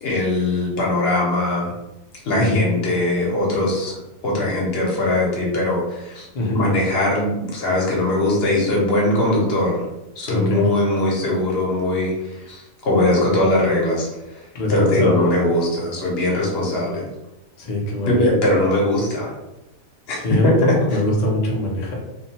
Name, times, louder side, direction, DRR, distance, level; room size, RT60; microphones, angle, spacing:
voice 1, 0.0-1.7 2.2-6.3 6.5-9.8 10.2-14.4 14.7-17.0 18.1-19.3 20.1-20.7, left 1 dB, 50° left, -3 dB, 0.9 m, -20 dB
voice 2, 10.3-10.6 14.5-15.2 17.6-18.2 20.1-22.0, left 1 dB, 70° left, -3 dB, 0.4 m, -22 dB
2.7 x 2.2 x 2.8 m, 0.96 s
omnidirectional pair, 1.5 m